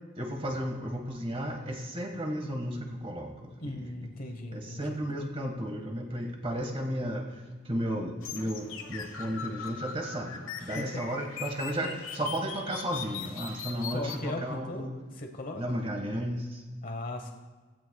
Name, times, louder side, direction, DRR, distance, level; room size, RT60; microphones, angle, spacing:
voice 1, 0.1-3.9 4.5-14.9 15.5-16.6, equal, 30° right, 2 dB, 1.6 m, -34 dB
voice 2, 3.6-5.0 10.6-11.1 13.9-14.9 15.1-15.6 16.8-17.3, left 1 dB, 45° left, 4 dB, 1.1 m, -38 dB
sound 1, 8.2-14.2, left 6 dB, 85° left, 1.2 m, -40 dB
17.5 x 15.5 x 2.3 m, 1.3 s
head